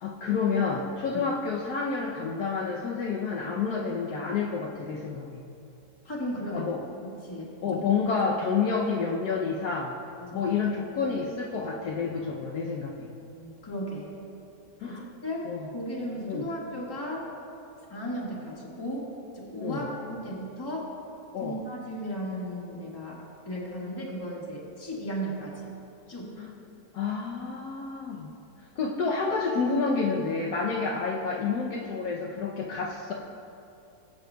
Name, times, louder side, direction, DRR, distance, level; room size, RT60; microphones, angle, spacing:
voice 1, 0.0-5.4 6.5-6.8 7.6-10.0 10.3-13.1 14.8-15.1 15.4-15.7 16.3-16.5 19.6-19.9 21.3-21.6 26.4-26.5 26.9-28.3 28.8-33.1, left 5 dB, 75° left, -1 dB, 1.2 m, -29 dB
voice 2, 6.0-6.7 7.0-7.8 10.2-10.5 13.3-14.1 14.8-17.3 17.9-19.0 19.3-19.9 20.2-20.9 21.4-25.7 26.1-26.3, equal, 15° left, -4 dB, 1.6 m, -35 dB
19.5 x 8.9 x 2.3 m, 2.7 s
omnidirectional pair, 1.8 m